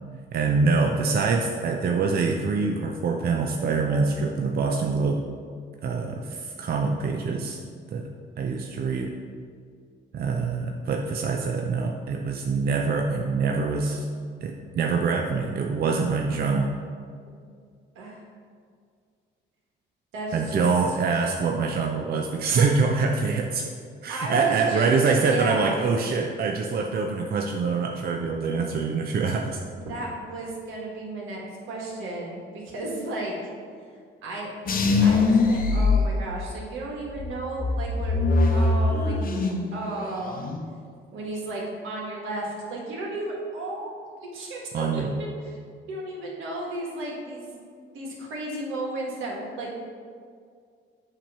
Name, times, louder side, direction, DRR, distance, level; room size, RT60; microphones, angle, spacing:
voice 1, 0.3-5.2 5.8-7.6 7.9-8.1 8.4-9.2 10.1-14.1 14.4-16.7 20.3-23.7 24.0-29.6 44.7-45.1, right 4 dB, 50° right, 2 dB, 0.5 m, -25 dB
voice 2, 20.1-20.7 24.1-25.8 29.7-33.4 34.2-34.5 35.0-38.2 38.5-40.4 41.1-43.9 44.3-45.3 45.9-47.4 47.9-49.7, right 2 dB, 85° right, -2 dB, 1.6 m, -34 dB
sound 1, 34.7-36.7 37.2-39.7 40.0-40.6, left 3 dB, 45° left, 0.8 m, -22 dB
7.4 x 3.0 x 5.5 m, 2.1 s
cardioid pair, 90°, 20 cm